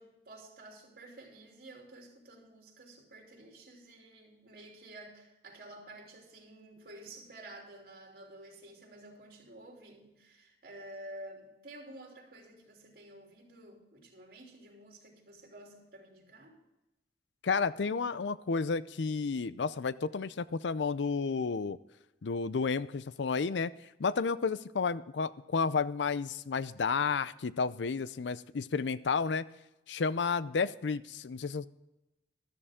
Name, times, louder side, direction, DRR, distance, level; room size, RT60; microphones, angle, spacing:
voice 1, 0.0-16.6, right 1 dB, 55° right, 0 dB, 3.3 m, -51 dB
voice 2, 17.4-21.8 22.2-23.7 24.0-29.4 29.9-31.7, left 5 dB, 90° left, 17 dB, 0.5 m, -31 dB
13.5 x 13.0 x 3.7 m, 0.97 s
head